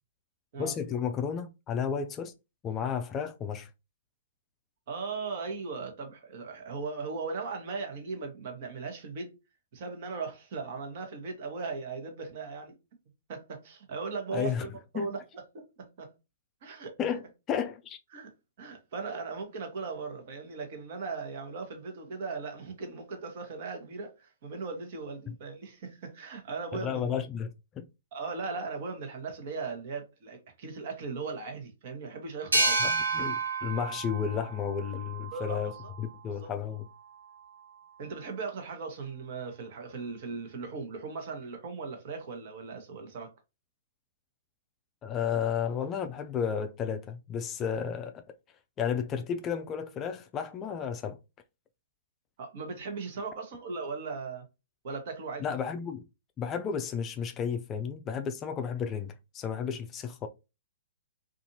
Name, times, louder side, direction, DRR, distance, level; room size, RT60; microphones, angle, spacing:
voice 1, 0.6-2.3 2.6-3.7 14.3-14.7 14.9-15.1 17.0-17.2 17.5-18.0 26.7-27.9 32.8-36.9 45.0-48.2 48.8-51.2 55.4-56.0 56.4-60.3, left 7 dB, 25° left, 0.3 m, -32 dB
voice 2, 4.9-9.4 9.7-12.7 13.3-15.2 15.5-16.1 16.6-16.9 18.1-18.3 18.6-27.2 28.1-32.8 35.3-35.9 36.4-36.5 38.0-43.3 52.4-54.4 54.8-55.5, right 4 dB, 50° right, 1.0 m, -38 dB
sound 1, 32.5-35.9, right 3 dB, 85° right, 0.9 m, -30 dB
2.6 x 2.4 x 2.6 m
hypercardioid pair, 120°, 0 cm